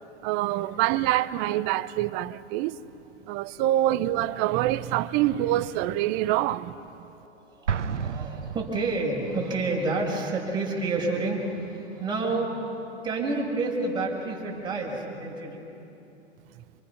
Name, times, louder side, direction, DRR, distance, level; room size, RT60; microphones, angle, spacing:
voice 1, 0.2-2.8 3.3-6.8, right 14 dB, 30° right, 0.6 m, -25 dB
voice 2, 7.4-12.7 13.0-15.6, right 3 dB, 10° right, 6.0 m, -29 dB
Explosion, 7.7-9.3, right 7 dB, 85° right, 1.0 m, -31 dB
28.0 x 26.5 x 5.9 m
hypercardioid pair, 120°, 35 cm